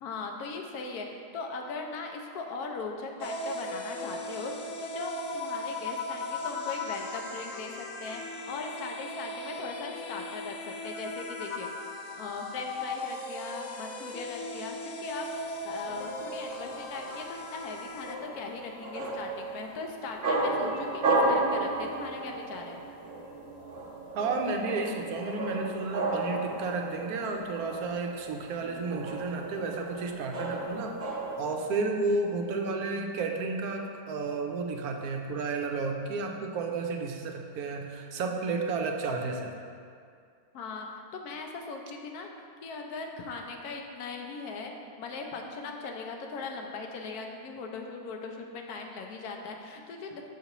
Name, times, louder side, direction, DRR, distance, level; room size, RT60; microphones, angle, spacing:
voice 1, 0.0-11.7 12.2-22.8 40.5-44.7 45.0-50.3, left 4 dB, 85° left, 2 dB, 1.2 m, -39 dB
sound 1, 3.2-18.1, left 2 dB, 60° left, 0.8 m, -38 dB
sound 2, 15.3-31.7, right 2 dB, 50° right, 0.8 m, -34 dB
voice 2, 24.1-31.0 31.4-39.5, right 3 dB, 85° right, 3 dB, 1.1 m, -32 dB
6.7 x 5.6 x 3.0 m, 2.3 s
omnidirectional pair, 1.6 m